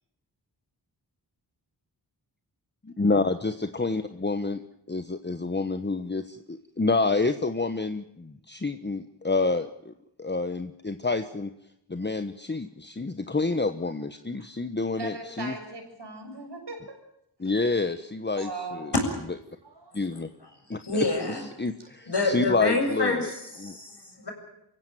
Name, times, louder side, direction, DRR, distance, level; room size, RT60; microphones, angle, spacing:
voice 1, 2.8-4.6 4.9-9.9 10.2-11.5 11.9-15.5 17.4-18.9 19.9-20.3 20.7-20.8 21.2-23.3 23.6-23.8, left 3 dB, 25° left, 10 dB, 1.2 m, -28 dB
voice 2, 14.9-17.0 17.4-17.6 18.4-18.9 19.6-20.0 21.8-21.9, right 2 dB, 75° right, 3 dB, 6.6 m, -39 dB
voice 3, 20.8-21.5 22.1-24.3, left 2 dB, 70° left, 3 dB, 7.3 m, -28 dB
23.5 x 16.0 x 9.2 m, 0.79 s
cardioid pair, 45°, 42 cm